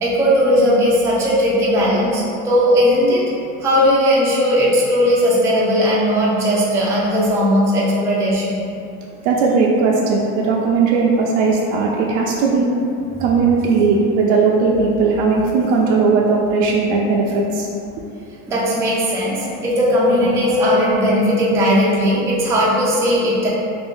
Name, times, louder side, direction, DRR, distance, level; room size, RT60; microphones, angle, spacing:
voice 1, 0.0-3.3 3.6-8.7 18.5-23.5, equal, 10° right, -6 dB, 0.3 m, -17 dB
voice 2, 9.2-12.7 13.2-17.7, right 4 dB, 80° right, -2 dB, 0.5 m, -17 dB
2.7 x 2.6 x 3.5 m, 2.6 s
supercardioid pair, 130°, 38 cm